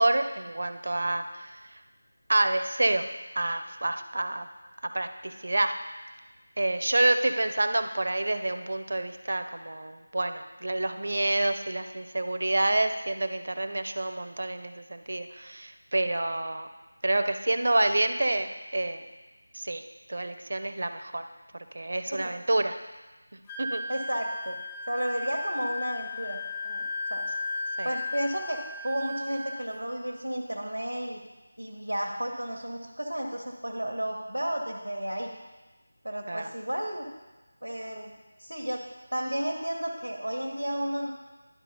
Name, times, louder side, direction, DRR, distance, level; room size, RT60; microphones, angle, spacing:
voice 1, 0.0-1.6 2.3-3.1 3.4-4.5 4.9-5.7 6.6-16.7 17.0-18.5 18.7-19.0 19.5-19.8 20.1-21.2 21.7-22.8 23.6-23.8 27.8-27.9 36.3-36.5, right 2 dB, 55° right, 8 dB, 0.5 m, -28 dB
Wind instrument woodwind instrument, 23.5-29.7, left 3 dB, 15° left, 0.5 m, -35 dB
voice 2, 23.9-24.6 24.9-27.3 27.8-31.2 31.6-35.3 36.0-37.1 37.6-38.1 38.4-41.1, equal, 85° right, -1 dB, 1.0 m, -32 dB
11.0 x 4.3 x 4.0 m, 1.2 s
figure-of-eight pair, 165°, 0 cm